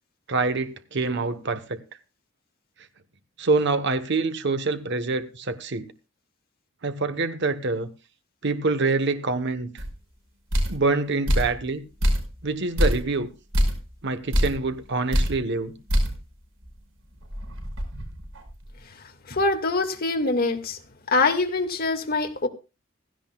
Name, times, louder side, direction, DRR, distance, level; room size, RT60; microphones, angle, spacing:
voice 1, 0.3-1.8 3.4-5.9 6.8-7.9 8.4-9.8 10.7-11.8 12.4-13.3 14.0-15.7, right 3 dB, 60° right, 1.1 m, -25 dB
sound 1, 9.8-9.9 10.5-10.8 11.3-11.6 12.0-12.4 12.8-13.1 13.5-13.8 14.3-14.6 15.1-15.4 15.9-16.2 16.6-16.7 17.2-18.7, equal, 85° right, 5.4 m, -24 dB
voice 2, 19.3-20.8 21.1-22.5, left 3 dB, 50° left, 1.9 m, -24 dB
16.5 x 15.5 x 2.3 m
head